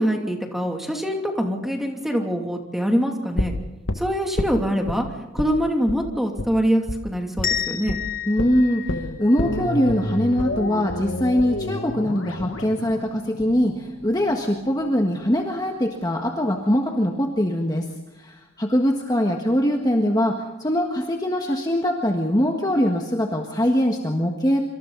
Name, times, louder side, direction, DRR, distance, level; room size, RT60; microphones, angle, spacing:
voice 1, 0.0-3.5 3.9-5.1 5.3-8.0, equal, ahead, 2 dB, 2.7 m, -24 dB
sound 1, 3.4-5.0 5.4-5.6 5.9-6.0 6.4-6.5 6.9-7.0 7.4-7.6 7.9-8.0 8.4-14.4 14.7-14.8, left 1 dB, 80° left, 1.9 m, -29 dB
sound 2, 7.4-10.2, left 8 dB, 40° left, 2.1 m, -31 dB
voice 2, 8.3-17.9 18.2-24.6, equal, 20° left, 2 dB, 1.6 m, -22 dB
26.5 x 25.5 x 4.1 m, 1.1 s
head